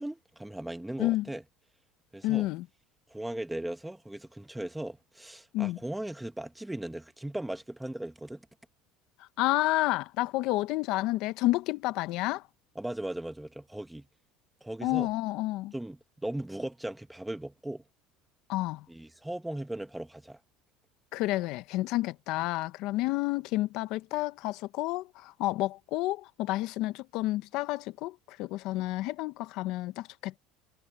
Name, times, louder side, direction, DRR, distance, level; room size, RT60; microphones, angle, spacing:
voice 1, 0.0-1.4 2.1-2.5 3.1-8.5 12.7-14.0 14.6-15.1 15.7-17.8 18.9-20.4, right 1 dB, 5° right, 1.6 m, -38 dB
voice 2, 2.2-2.6 5.5-5.8 9.4-12.4 14.8-15.7 18.5-18.8 21.1-30.4, left 18 dB, 65° left, 0.9 m, -30 dB
supercardioid pair, 120°, 0 cm